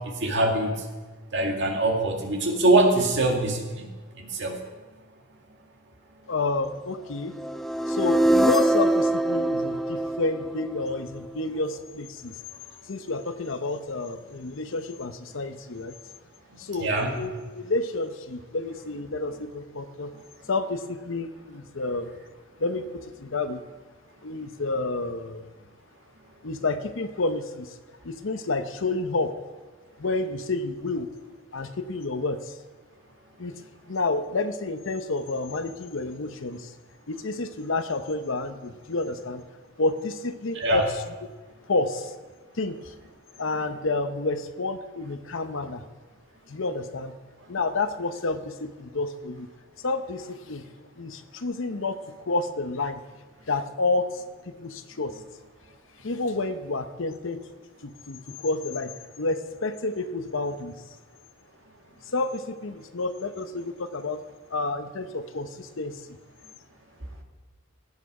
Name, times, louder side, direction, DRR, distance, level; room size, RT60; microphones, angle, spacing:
voice 1, 0.2-0.7 1.3-3.9 4.4-4.6 16.8-17.1 40.6-40.9, right 2 dB, 55° right, 1 dB, 2.0 m, -23 dB
voice 2, 6.3-7.3 7.9-12.4 12.9-16.0 16.6-20.1 20.5-22.2 22.6-23.7 24.2-25.5 26.4-27.8 28.0-29.4 30.0-31.1 31.5-32.6 33.4-33.6 33.9-36.7 37.1-39.4 39.8-41.0 41.7-42.1 42.5-42.9 43.4-45.8 46.5-47.1 47.5-49.5 49.8-50.7 51.0-53.0 53.5-55.2 56.0-57.4 57.8-60.8 62.1-66.1, left 3 dB, 65° left, 10 dB, 0.8 m, -30 dB
sound 1, 7.4-11.4, right 1 dB, ahead, 0.4 m, -24 dB
16.5 x 9.4 x 4.9 m, 1.3 s
head